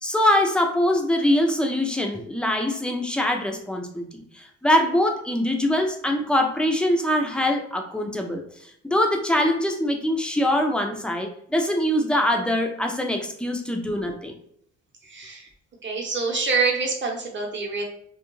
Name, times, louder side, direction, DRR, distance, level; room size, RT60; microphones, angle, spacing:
voice 1, 0.0-8.4 8.8-14.3, left 1 dB, 5° left, 3 dB, 0.4 m, -23 dB
voice 2, 15.0-15.5 15.8-17.8, right 4 dB, 40° right, 0 dB, 0.8 m, -26 dB
2.3 x 2.1 x 3.0 m, 0.68 s
cardioid pair, 90°, 30 cm